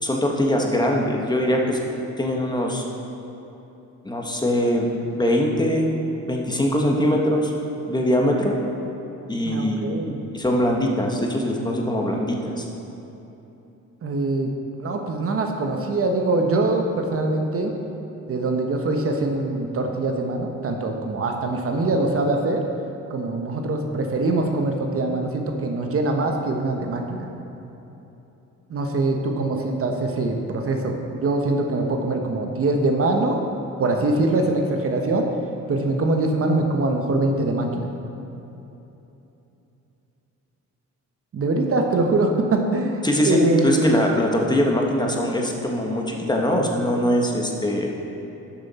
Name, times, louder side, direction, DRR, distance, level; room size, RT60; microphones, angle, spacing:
voice 1, 0.0-1.8 2.2-2.8 4.0-5.9 6.2-7.5 7.9-8.6 9.3-12.7 43.0-47.9, equal, 15° left, 0 dB, 1.3 m, -22 dB
voice 2, 9.4-10.2 14.0-14.5 14.8-17.7 18.3-22.6 23.1-27.3 28.7-33.4 33.8-35.3 35.7-37.9 41.3-43.9, right 2 dB, 50° right, 3 dB, 1.1 m, -23 dB
11.5 x 7.2 x 4.2 m, 3.0 s
cardioid pair, 90°, 30 cm